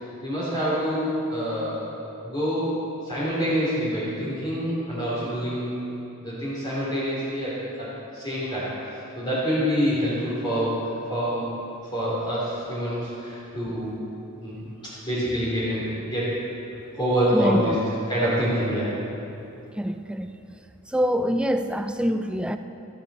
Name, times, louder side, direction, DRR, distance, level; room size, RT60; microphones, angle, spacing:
voice 1, 0.2-1.9 2.2-2.7 3.0-5.7 6.2-7.9 8.1-10.7 11.1-11.5 11.9-14.0 14.4-14.7 15.0-16.3 16.9-17.7 18.1-18.9, equal, 20° left, -9 dB, 3.4 m, -26 dB
voice 2, 17.3-17.8 19.8-20.4 20.9-22.6, equal, 5° right, 8 dB, 0.4 m, -25 dB
17.0 x 13.5 x 4.3 m, 2.8 s
head